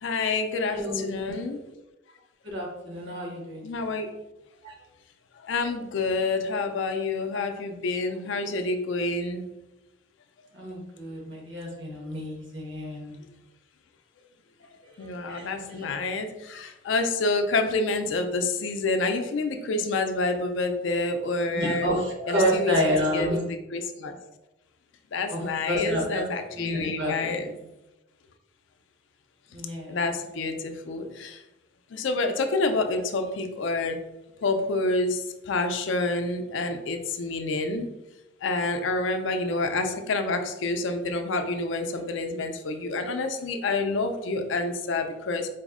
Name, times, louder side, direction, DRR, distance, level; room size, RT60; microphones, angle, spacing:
voice 1, 0.0-1.6 3.6-4.1 5.5-9.4 15.0-21.9 22.3-22.7 23.1-23.3 23.7-24.1 25.1-27.5 29.9-31.3 31.9-34.0 34.4-35.2 35.5-37.9 38.4-45.5, left 3 dB, 70° left, 6 dB, 0.4 m, -28 dB
voice 2, 0.7-1.3 2.4-3.7 4.6-4.7 10.5-13.2 15.0-15.9 21.5-23.4 25.3-25.4 25.7-26.2 26.5-27.7 29.5-30.0, equal, 65° right, -2 dB, 1.1 m, -29 dB
4.1 x 2.0 x 3.5 m, 0.97 s
head